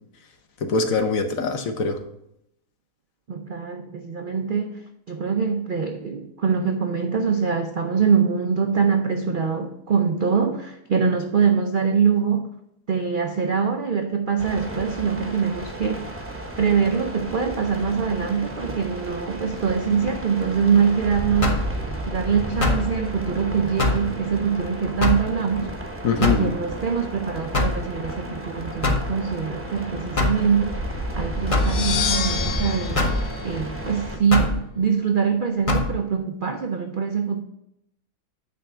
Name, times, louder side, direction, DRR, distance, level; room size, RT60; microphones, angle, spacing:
voice 1, 0.6-2.0 26.0-26.5, left 4 dB, 60° left, 6 dB, 1.3 m, -23 dB
voice 2, 3.3-4.8 5.1-12.4 12.9-16.2 16.6-21.6 22.1-25.7 26.2-33.0 33.4-37.4, right 6 dB, 60° right, 5 dB, 0.5 m, -23 dB
sound 1, 14.4-34.2, right 1 dB, 10° right, 0.8 m, -33 dB
sound 2, 21.4-21.7 22.6-22.9 23.8-24.1 25.0-25.3 26.2-26.5 27.5-27.8 28.8-29.1 30.2-30.4 31.5-31.8 33.0-33.2 34.3-34.6 35.7-35.9, left 2 dB, 25° left, 0.8 m, -22 dB
sound 3, 31.5-34.3, left 7 dB, 80° left, 1.3 m, -29 dB
9.4 x 3.5 x 6.6 m, 0.80 s
omnidirectional pair, 1.7 m